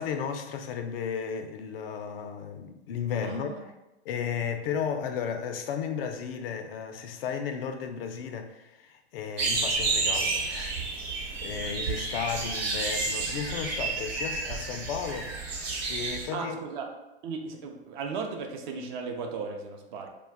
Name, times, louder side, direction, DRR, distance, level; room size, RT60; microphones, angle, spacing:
voice 1, 0.0-3.7 4.1-10.8 11.4-16.6, left 7 dB, 60° left, 6 dB, 0.4 m, -34 dB
voice 2, 3.2-3.6 16.3-16.9 17.2-20.1, right 5 dB, 45° right, 3 dB, 0.5 m, -36 dB
sound 1, 9.4-16.3, right 3 dB, 70° right, 1.0 m, -30 dB
2.3 x 2.2 x 3.5 m, 0.96 s
hypercardioid pair, 115°, 33 cm